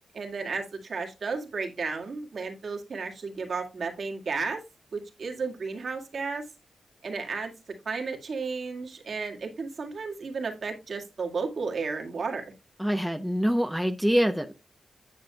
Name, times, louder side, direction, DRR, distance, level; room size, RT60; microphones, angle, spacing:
voice 1, 0.1-4.6 4.9-6.4 7.0-7.5 7.9-12.4, right 4 dB, 60° right, 2.0 m, -33 dB
voice 2, 12.8-14.5, equal, 5° right, 0.7 m, -25 dB
9.4 x 6.8 x 2.3 m
wide cardioid pair, 95°, 0 cm